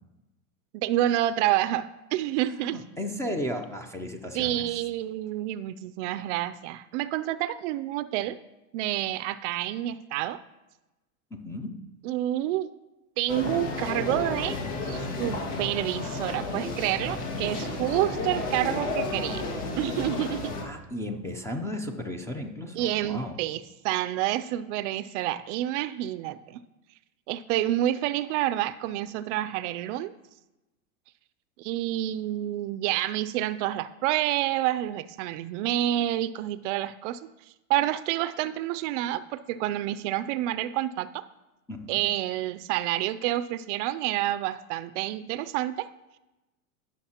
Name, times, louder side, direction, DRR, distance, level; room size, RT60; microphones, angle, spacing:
voice 1, 0.7-2.8 4.3-8.4 8.7-10.4 12.0-12.7 13.2-19.5 19.8-20.6 22.7-26.6 27.3-30.1 31.6-37.2 37.7-41.2 41.9-45.9, right 13 dB, 55° right, 15 dB, 0.5 m, -28 dB
voice 2, 2.6-4.8 11.3-11.7 20.6-23.3 41.7-42.1, left 1 dB, 5° left, 4 dB, 0.4 m, -34 dB
sound 1, 13.3-20.6, left 3 dB, 90° left, 2.0 m, -32 dB
16.0 x 6.5 x 2.9 m, 1.0 s
supercardioid pair, 125°, 44 cm